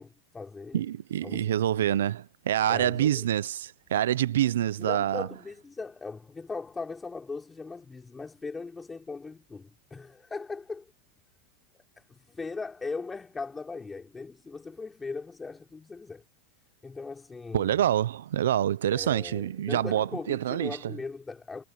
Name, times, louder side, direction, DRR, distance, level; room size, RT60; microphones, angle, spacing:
voice 1, 0.0-0.8 1.2-2.0 2.7-3.2 4.8-10.9 12.0-16.2 16.8-17.8 18.9-21.6, left 4 dB, 15° left, 5.7 m, -39 dB
voice 2, 0.7-5.3 17.5-20.8, right 11 dB, 90° right, 0.6 m, -26 dB
supercardioid pair, 125°, 0 cm